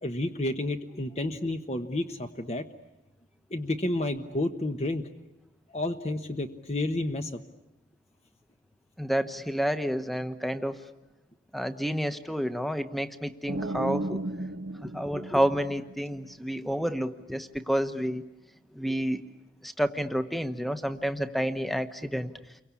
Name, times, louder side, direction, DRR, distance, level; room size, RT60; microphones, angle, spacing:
voice 1, 0.0-2.6 3.5-5.0 5.7-7.3, left 1 dB, 35° left, 6 dB, 1.1 m, -30 dB
voice 2, 9.0-10.8 11.5-14.2 14.8-18.2 18.8-19.2 19.6-22.3, equal, ahead, 9 dB, 1.1 m, -29 dB
sound 1, 13.5-16.3, right 1 dB, 75° right, 1.2 m, -34 dB
29.5 x 23.5 x 8.5 m, 1.0 s
head